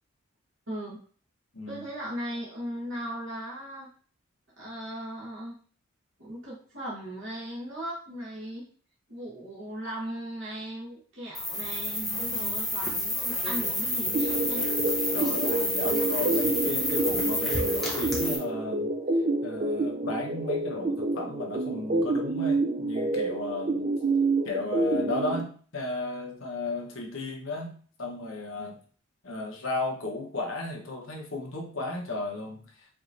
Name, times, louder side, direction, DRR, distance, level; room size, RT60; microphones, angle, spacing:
voice 1, 0.7-1.0 1.7-3.9 4.6-5.5 6.2-8.7 9.1-14.7 28.6-28.7, equal, 60° right, -6 dB, 1.3 m, -38 dB
voice 2, 1.5-1.9 12.1-12.5 15.1-18.9 19.4-23.9 24.4-28.8 29.2-32.9, left 2 dB, 70° left, 0 dB, 1.0 m, -35 dB
sound 1, 11.3-18.4, left 1 dB, ahead, 0.8 m, -29 dB
sound 2, 14.1-25.4, right 2 dB, 35° right, 0.3 m, -28 dB
4.8 x 3.0 x 2.6 m, 0.43 s
head